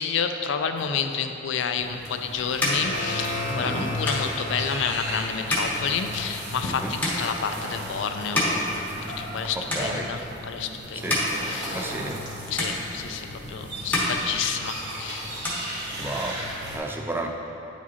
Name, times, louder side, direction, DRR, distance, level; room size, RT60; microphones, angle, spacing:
voice 1, 0.0-8.6 9.0-12.0 12.5-15.2, left 6 dB, 70° left, 7 dB, 0.4 m, -30 dB
sound 1, 1.7-9.4 9.7-10.4 10.8-12.3 12.6-13.4 13.7-15.0 15.2-16.4, left 1 dB, 10° left, 0.9 m, -30 dB
sound 2, 1.7-16.8, equal, 60° right, 1.3 m, -36 dB
sound 3, 2.8-7.5, left 1 dB, 85° right, 1.2 m, -36 dB
voice 2, 3.6-3.9 6.6-6.9 9.6-10.1 11.0-11.2 11.7-12.2 16.0-16.4 16.7-17.3, right 2 dB, 10° right, 2 dB, 0.3 m, -32 dB
9.1 x 4.9 x 2.8 m, 3.0 s
head